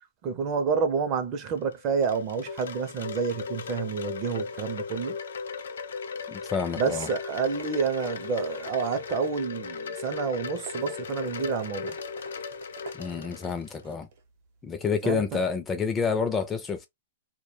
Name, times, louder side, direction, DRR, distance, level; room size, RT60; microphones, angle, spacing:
voice 1, 0.2-5.2 6.8-12.0 15.0-15.4, right 5 dB, 35° right, 0.5 m, -29 dB
Wind chime, 1.6-13.8, left 5 dB, 90° left, 0.4 m, -37 dB
voice 2, 6.3-7.1 13.0-14.1 14.6-16.9, left 5 dB, 15° left, 0.4 m, -29 dB
sound 1, 6.3-15.2, right 4 dB, 55° right, 0.9 m, -48 dB
2.2 x 2.1 x 3.2 m
hypercardioid pair, 150°, 0 cm